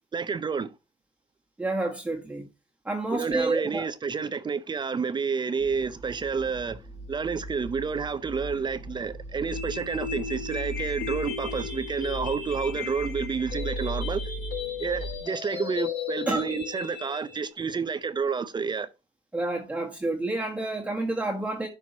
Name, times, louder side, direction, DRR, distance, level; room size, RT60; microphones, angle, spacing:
voice 1, 0.1-0.7 3.1-6.8 7.1-14.2 14.8-18.9, right 5 dB, 25° right, 0.6 m, -30 dB
voice 2, 1.6-2.5 2.8-3.9 16.3-16.4 19.3-21.7, right 2 dB, 10° right, 1.4 m, -29 dB
sound 1, 5.6-15.2, right 1 dB, 40° left, 3.6 m, -38 dB
sound 2, 9.5-17.5, left 7 dB, 75° left, 3.9 m, -36 dB
11.5 x 4.6 x 2.7 m
cardioid pair, 110°, 17 cm